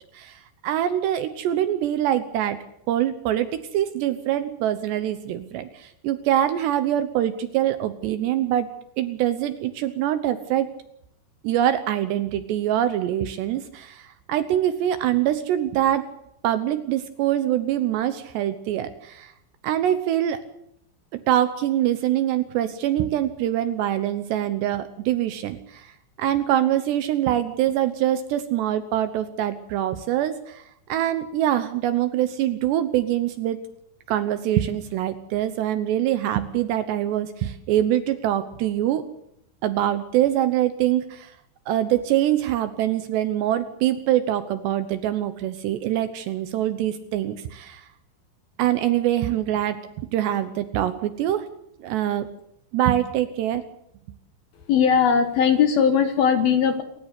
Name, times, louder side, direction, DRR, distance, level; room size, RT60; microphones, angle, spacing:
voice 1, 0.1-2.6 2.9-8.7 9.0-10.7 11.4-16.1 16.4-19.3 19.6-20.4 21.3-30.6 30.9-33.6 34.1-39.0 39.6-41.3 41.7-47.8 48.6-51.5 51.8-52.3 52.7-53.6, right 12 dB, 75° right, 11 dB, 2.8 m, -24 dB
voice 2, 54.7-56.8, left 7 dB, 65° left, 8 dB, 2.6 m, -19 dB
28.0 x 14.0 x 8.3 m, 0.75 s
omnidirectional pair, 5.7 m